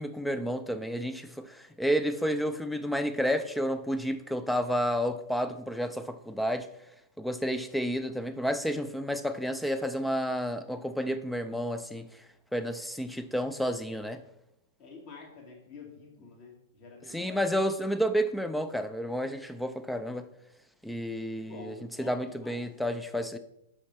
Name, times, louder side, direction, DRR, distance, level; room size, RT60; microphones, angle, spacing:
voice 1, 0.0-6.7 7.2-12.1 12.5-14.2 17.1-20.3 20.8-23.4, equal, ahead, 0.5 m, -31 dB
voice 2, 14.8-17.5 21.4-22.7, left 3 dB, 45° left, 2.6 m, -48 dB
7.0 x 5.0 x 4.3 m
figure-of-eight pair, 105°, 0 cm